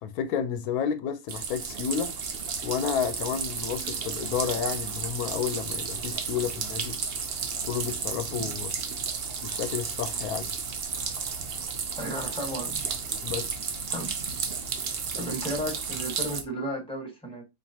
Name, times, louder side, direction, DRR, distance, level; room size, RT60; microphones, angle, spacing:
voice 1, 0.0-2.1 2.6-7.0 7.6-8.7 9.4-10.5 13.2-13.5, left 7 dB, 85° left, 1.1 m, -31 dB
sound 1, 1.3-16.4, right 5 dB, 55° right, 0.7 m, -33 dB
voice 2, 12.0-12.8 13.9-14.1 15.2-17.4, right 1 dB, 5° left, 1.4 m, -33 dB
4.5 x 2.9 x 2.7 m
omnidirectional pair, 1.5 m